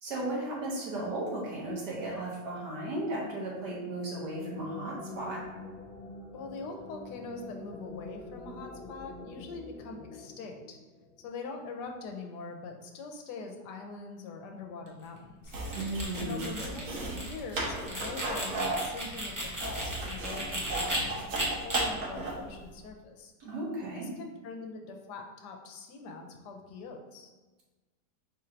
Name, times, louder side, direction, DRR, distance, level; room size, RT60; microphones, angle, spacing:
voice 1, 0.0-5.4 15.7-16.4 23.4-24.1, right 1 dB, 75° right, -4 dB, 1.8 m, -35 dB
sound 1, 3.9-11.3, left 2 dB, 35° left, 1.0 m, -46 dB
voice 2, 6.3-10.8 11.2-15.6 16.2-23.3 23.9-27.3, left 3 dB, 80° left, 3 dB, 1.2 m, -43 dB
sound 2, 15.4-22.5, right 2 dB, 55° right, 1.2 m, -35 dB
sound 3, 15.5-21.0 21.3-21.8, right 1 dB, 20° right, 0.6 m, -36 dB
4.4 x 2.5 x 4.3 m, 1.2 s
omnidirectional pair, 1.8 m